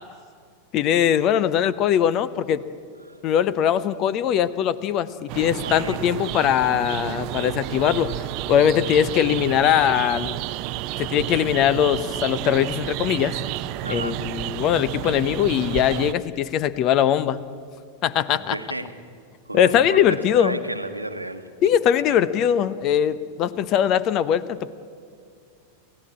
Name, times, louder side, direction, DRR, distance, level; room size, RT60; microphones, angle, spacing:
voice 1, 0.7-2.6 3.2-8.1 8.5-10.4 11.0-13.4 13.9-17.4 18.0-18.6 19.5-20.6 21.6-24.7, left 10 dB, 35° left, 17 dB, 0.9 m, -21 dB
sound 1, 5.3-16.1, right 15 dB, 45° right, 0.7 m, -31 dB
voice 2, 5.6-6.0 13.8-14.2 18.3-19.1 19.5-21.5, right 1 dB, 85° right, 8 dB, 1.4 m, -32 dB
29.0 x 15.5 x 8.6 m, 2.3 s
figure-of-eight pair, 90°, 0 cm